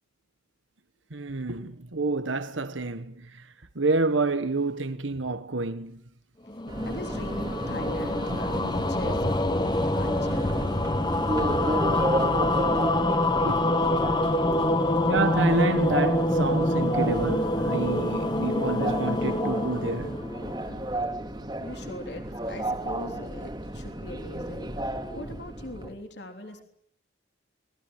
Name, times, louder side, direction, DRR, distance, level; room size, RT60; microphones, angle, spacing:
voice 1, 1.1-6.0 8.3-8.8 13.4-13.6 15.1-20.2, right 3 dB, 85° right, 1.4 m, -29 dB
sound 1, 6.5-20.9, left 1 dB, 20° left, 1.0 m, -26 dB
Subway metro underground, 6.7-25.9, right 1 dB, 20° right, 2.5 m, -32 dB
voice 2, 6.9-10.6 21.6-26.6, left 1 dB, 60° left, 3.5 m, -40 dB
27.0 x 20.5 x 8.9 m
head